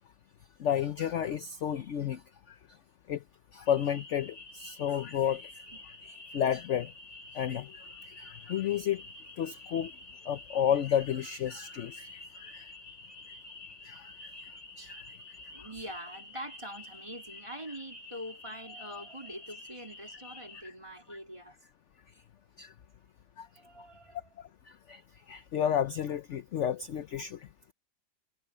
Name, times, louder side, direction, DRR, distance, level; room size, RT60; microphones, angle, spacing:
voice 1, 0.6-2.2 2.5-2.6 3.1-3.2 3.5-5.4 6.3-6.9 7.3-7.7 8.2-9.0 9.4-9.9 10.3-12.2 12.5-12.7 13.9-14.1 14.8-15.0 20.6-20.7 21.1-21.2 22.6-22.7 23.4-23.5 24.9-25.0 25.3-27.4, left 9 dB, 55° left, 0.9 m, -31 dB
sound 1, 3.7-20.6, left 2 dB, 25° left, 1.4 m, -49 dB
voice 2, 15.5-21.6 23.6-24.3, equal, 20° right, 3.8 m, -44 dB
omnidirectional pair, 1.8 m